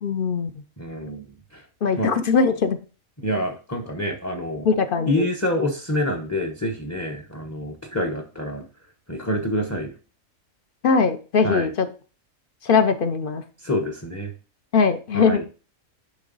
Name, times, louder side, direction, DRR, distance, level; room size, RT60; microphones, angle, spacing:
voice 1, 0.0-0.5 1.8-2.8 4.6-5.3 10.8-11.9 12.6-13.4 14.7-15.4, left 5 dB, 50° left, 10 dB, 0.7 m, -20 dB
voice 2, 0.8-1.2 1.5-1.6 2.0-2.1 3.2-4.7 5.1-8.6 9.1-9.9 11.4-11.7 13.6-14.3 15.1-15.4, left 1 dB, 15° left, 4 dB, 0.7 m, -27 dB
9.8 x 3.8 x 3.9 m, 0.35 s
omnidirectional pair, 1.5 m